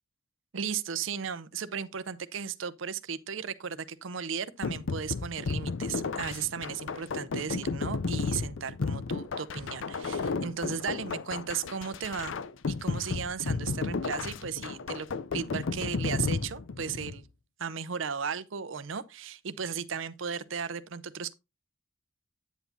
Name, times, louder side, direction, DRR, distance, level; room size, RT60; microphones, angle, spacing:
voice 1, 0.5-12.3 12.7-15.1 15.3-17.3 17.6-21.3, right 6 dB, 80° right, 0.6 m, -35 dB
sound 1, 4.6-17.2, left 4 dB, 80° left, 0.5 m, -33 dB
9.3 x 8.2 x 2.6 m
head